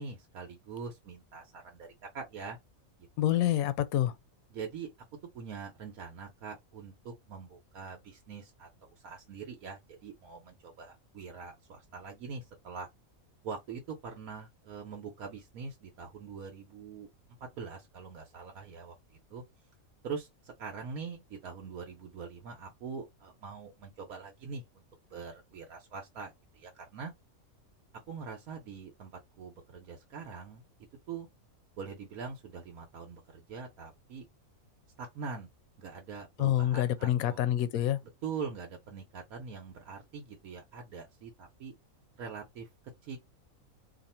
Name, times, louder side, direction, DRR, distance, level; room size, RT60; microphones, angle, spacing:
voice 1, 0.0-2.6 4.5-4.9 5.3-12.9 13.4-17.1 17.4-19.4 20.0-24.8 25.1-27.1 28.1-30.6 31.1-31.3 31.8-34.3 35.0-35.5 35.8-37.4 38.2-41.7 42.2-42.7 43.0-43.2, right 5 dB, 80° right, 1.2 m, -43 dB
voice 2, 3.2-4.1 36.4-38.0, left 12 dB, 80° left, 1.0 m, -27 dB
2.8 x 2.5 x 4.2 m
omnidirectional pair, 1.5 m